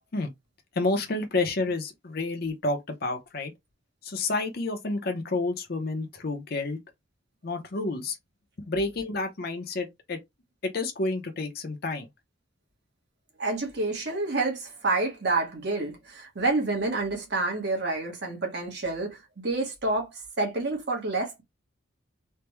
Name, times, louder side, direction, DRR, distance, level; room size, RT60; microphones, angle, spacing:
voice 1, 0.7-3.5 4.0-6.8 7.4-8.2 8.7-10.2 10.6-12.1, left 2 dB, 50° left, 0.7 m, -29 dB
voice 2, 13.4-21.4, right 2 dB, 55° right, 1.1 m, -28 dB
3.3 x 2.2 x 3.0 m
head